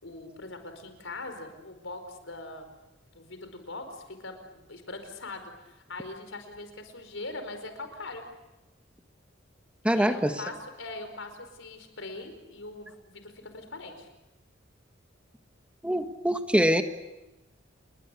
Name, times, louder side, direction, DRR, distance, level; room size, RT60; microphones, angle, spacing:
voice 1, 0.0-2.7 3.1-8.2 9.9-14.1, left 2 dB, 80° left, 7 dB, 5.1 m, -41 dB
voice 2, 9.8-10.3 15.8-16.8, equal, 5° right, 7 dB, 1.4 m, -24 dB
30.0 x 22.0 x 8.5 m, 1.0 s
head